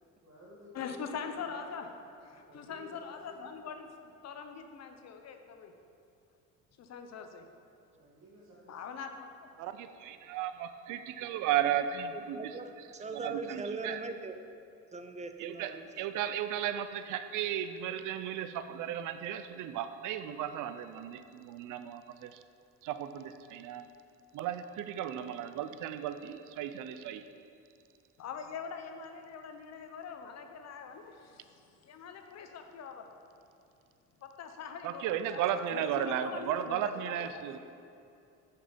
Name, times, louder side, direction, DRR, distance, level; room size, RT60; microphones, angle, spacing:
voice 1, 0.2-1.7 2.5-3.5 7.9-9.0 9.5-9.7, left 1 dB, 55° right, -6 dB, 1.8 m, -54 dB
voice 2, 0.7-1.9 2.2-5.7 6.8-7.4 8.7-9.5 28.2-33.1 34.2-35.4 35.7-37.3, left 6 dB, 55° left, 6 dB, 0.7 m, -43 dB
voice 3, 9.6-12.6 13.1-14.0 15.4-22.4 22.8-23.9 24.3-27.2 34.8-37.6, right 10 dB, 75° right, 11 dB, 0.5 m, -35 dB
voice 4, 12.3-14.3 14.9-16.1, right 3 dB, 20° right, 8 dB, 0.5 m, -40 dB
6.5 x 5.8 x 5.2 m, 2.6 s
cardioid pair, 90°, 31 cm